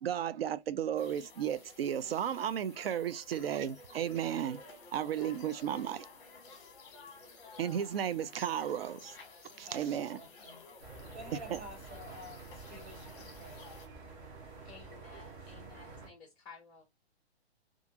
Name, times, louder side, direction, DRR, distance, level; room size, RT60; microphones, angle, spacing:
voice 1, 0.0-4.6 4.9-6.1 7.6-9.1 9.6-10.2 11.5-11.6, right 9 dB, 60° right, 0.5 m, -34 dB
sound 1, 1.0-13.9, left 3 dB, 25° left, 0.9 m, -53 dB
voice 2, 9.7-10.6 11.1-13.6, equal, 80° right, 1.3 m, -50 dB
sound 2, 10.8-16.1, right 4 dB, 30° right, 0.8 m, -49 dB
voice 3, 14.6-16.9, left 4 dB, 10° left, 0.5 m, -54 dB
2.5 x 2.4 x 2.7 m
figure-of-eight pair, 120°, 33 cm